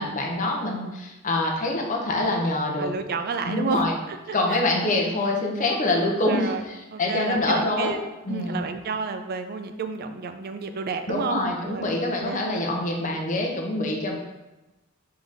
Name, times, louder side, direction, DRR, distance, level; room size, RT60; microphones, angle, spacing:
voice 1, 0.0-2.9 3.4-3.9 4.3-8.0 8.3-8.6 11.1-14.2, left 2 dB, 40° left, 1 dB, 0.7 m, -25 dB
voice 2, 2.8-4.6 6.3-6.6 6.9-8.0 8.3-12.4, right 4 dB, 50° right, 8 dB, 0.4 m, -31 dB
3.8 x 3.4 x 4.0 m, 1.0 s
head